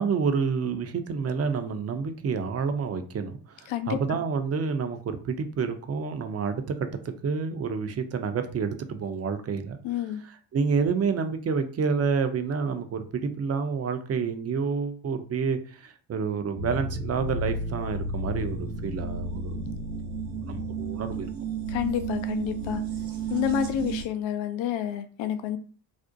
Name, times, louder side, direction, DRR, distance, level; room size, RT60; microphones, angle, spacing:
voice 1, 0.0-9.8 10.2-19.7 20.5-21.3, right 5 dB, 35° right, 8 dB, 0.5 m, -29 dB
voice 2, 3.7-4.0 9.8-10.2 21.7-22.8 23.3-25.6, left 10 dB, 70° left, 10 dB, 0.5 m, -29 dB
sound 1, 16.6-24.0, right 3 dB, 80° right, 0.9 m, -32 dB
2.5 x 2.0 x 2.6 m, 0.44 s
hypercardioid pair, 50°, 48 cm